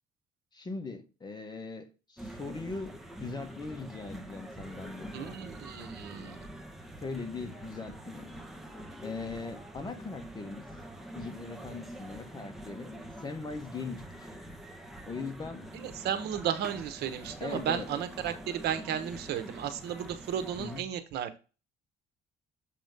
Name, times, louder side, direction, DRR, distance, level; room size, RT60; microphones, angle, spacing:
voice 1, 0.5-5.4 7.0-8.3 9.0-10.7 11.1-14.3 15.0-15.7 17.4-17.9 20.6-20.8, left 4 dB, 25° left, 1.3 m, -40 dB
sound 1, 2.2-20.8, right 1 dB, ahead, 1.0 m, -45 dB
voice 2, 5.1-6.5 15.7-21.4, right 9 dB, 75° right, 1.1 m, -34 dB
7.3 x 3.1 x 5.2 m
cardioid pair, 110°, 17 cm